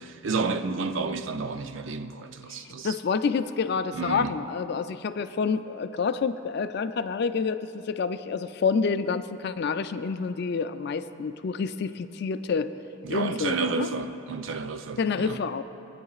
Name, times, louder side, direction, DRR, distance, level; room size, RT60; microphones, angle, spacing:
voice 1, 0.0-2.9 3.9-4.3 13.0-15.4, right 4 dB, 65° right, 0.5 m, -31 dB
voice 2, 2.5-12.7 13.1-13.9 15.0-15.6, left 5 dB, 50° left, 0.4 m, -28 dB
22.0 x 9.6 x 2.4 m
head